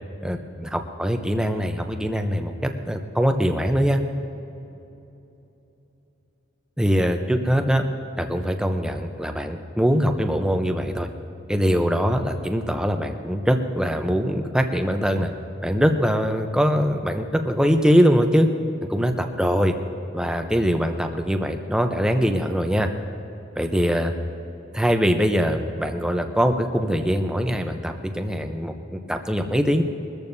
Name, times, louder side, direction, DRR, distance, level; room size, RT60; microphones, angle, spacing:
voice 1, 0.2-4.0 6.8-7.8 8.2-11.1 11.5-15.3 15.6-18.5 18.9-19.7 20.1-22.9 23.6-24.1 24.7-29.8, equal, 5° right, 5 dB, 0.7 m, -22 dB
22.5 x 14.0 x 2.7 m, 3.0 s
head